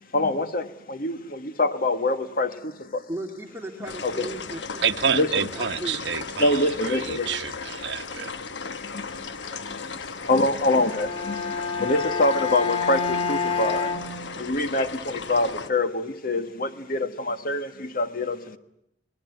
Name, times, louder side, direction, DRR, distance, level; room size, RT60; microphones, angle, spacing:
voice 1, 0.0-3.0 4.0-4.3 5.1-5.5 6.4-7.3 8.8-18.6, left 2 dB, 55° left, 1.6 m, -26 dB
voice 2, 3.1-5.3 5.5-6.0, right 1 dB, 15° right, 2.3 m, -36 dB
sound 1, 3.9-15.7, left 5 dB, 85° left, 1.1 m, -36 dB
voice 3, 4.8-8.3, right 7 dB, 85° right, 1.2 m, -28 dB
Bowed string instrument, 10.7-14.8, left 5 dB, 35° left, 2.3 m, -29 dB
28.5 x 20.0 x 9.3 m
head